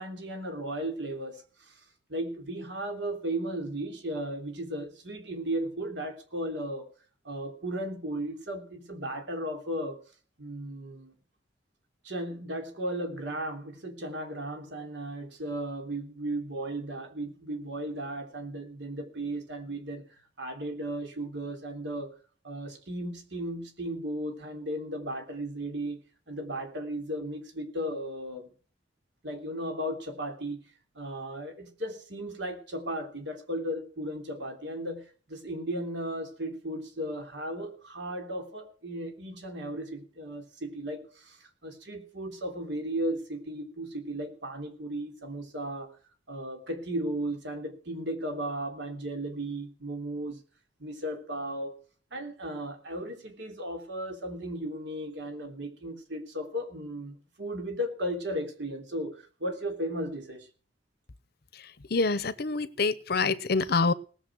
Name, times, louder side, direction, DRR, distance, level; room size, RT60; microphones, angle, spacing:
voice 1, 0.0-1.8 2.1-6.9 7.2-10.0 10.4-11.1 12.0-20.0 20.4-22.2 22.4-28.5 29.2-30.6 30.9-46.0 46.3-50.4 50.8-51.8 52.1-60.5, right 1 dB, 65° right, 4 dB, 3.3 m, -35 dB
voice 2, 61.5-63.9, left 4 dB, 55° left, 16 dB, 0.8 m, -27 dB
19.0 x 7.1 x 6.2 m, 0.40 s
head